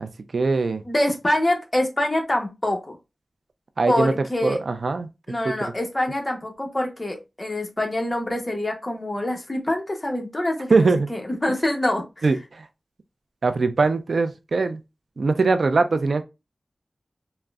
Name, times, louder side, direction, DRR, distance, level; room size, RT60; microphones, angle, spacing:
voice 1, 0.0-0.8 3.8-4.1 4.4-5.1 5.4-5.7 10.7-11.1 12.2-12.7 13.4-14.8 15.2-16.2, right 3 dB, 75° right, 0.3 m, -22 dB
voice 2, 0.8-3.0 3.9-4.6 5.3-12.0, left 1 dB, 25° left, 0.8 m, -25 dB
3.5 x 2.0 x 2.2 m
wide cardioid pair, 95°, 0 cm